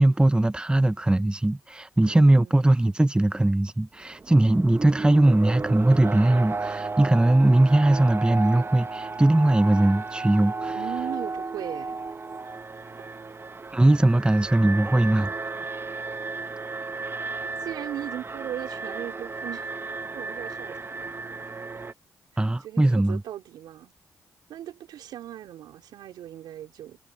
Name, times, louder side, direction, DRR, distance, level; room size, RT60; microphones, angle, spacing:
voice 1, 0.0-10.8 13.7-15.3 22.4-23.2, right 1 dB, 15° right, 0.9 m, -20 dB
voice 2, 2.0-2.6 10.7-12.0 17.3-19.7 20.1-20.8 22.3-23.9 24.5-27.0, right 12 dB, 80° right, 4.7 m, -38 dB
Alarm, 4.0-21.9, right 3 dB, 35° right, 1.3 m, -34 dB
supercardioid pair, 45°, 7 cm